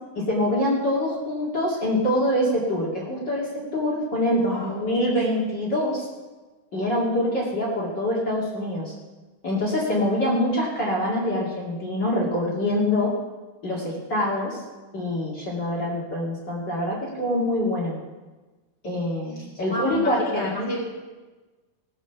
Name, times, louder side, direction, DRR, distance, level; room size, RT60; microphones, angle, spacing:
voice 1, 0.2-6.1 6.7-8.9 9.4-13.1 13.6-14.6 14.9-18.0 18.8-20.7, left 1 dB, 35° left, -6 dB, 2.7 m, -25 dB
voice 2, 4.4-5.0 19.7-20.8, right 1 dB, 10° right, -3 dB, 2.5 m, -32 dB
18.5 x 6.5 x 7.0 m, 1.2 s
omnidirectional pair, 3.7 m